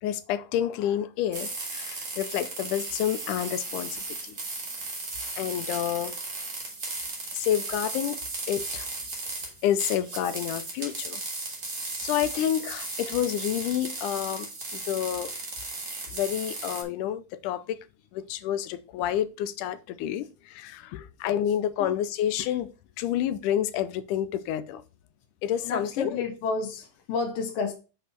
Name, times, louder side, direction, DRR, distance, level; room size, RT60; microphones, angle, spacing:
voice 1, 0.0-4.4 5.4-6.2 7.3-8.2 8.5-8.9 9.6-11.2 12.0-15.3 16.1-17.8 18.1-22.7 23.0-24.8 25.4-26.2, left 11 dB, 85° left, 2.2 m, -29 dB
sound 1, 1.3-16.8, right 3 dB, 30° right, 1.7 m, -36 dB
voice 2, 25.6-27.7, left 4 dB, 65° left, 1.5 m, -31 dB
6.5 x 5.1 x 4.4 m
omnidirectional pair, 3.6 m